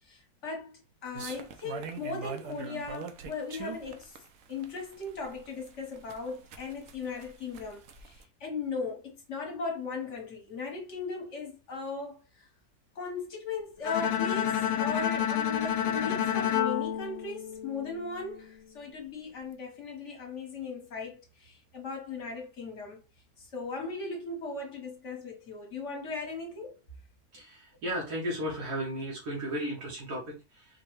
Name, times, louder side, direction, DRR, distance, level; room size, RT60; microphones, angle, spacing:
voice 1, 0.1-0.7 1.0-4.2 4.5-12.2 12.9-23.0 23.4-26.8, left 4 dB, 50° left, 1.5 m, -38 dB
sound 1, 1.1-8.2, right 6 dB, 65° right, 0.9 m, -42 dB
Bowed string instrument, 13.8-18.0, left 9 dB, 70° left, 0.7 m, -29 dB
voice 2, 27.3-30.7, equal, 80° right, 1.6 m, -35 dB
4.6 x 2.2 x 3.1 m
omnidirectional pair, 1.6 m